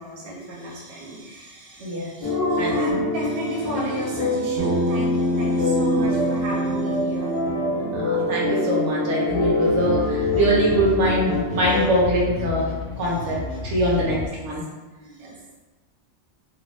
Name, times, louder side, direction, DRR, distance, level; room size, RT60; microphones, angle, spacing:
voice 1, 0.0-7.4 14.0-14.2 15.0-15.4, right 1 dB, 55° right, -4 dB, 0.9 m, -32 dB
sound 1, 2.2-11.8, left 1 dB, 35° left, 0.4 m, -25 dB
voice 2, 2.6-2.9 7.9-12.7 13.0-14.6, right 1 dB, 85° right, -5 dB, 1.2 m, -23 dB
Bass guitar, 4.6-8.9, equal, 30° right, 1.0 m, -28 dB
sound 2, 9.3-14.3, left 3 dB, 50° left, 0.8 m, -32 dB
3.0 x 2.4 x 3.4 m, 1.2 s
omnidirectional pair, 1.2 m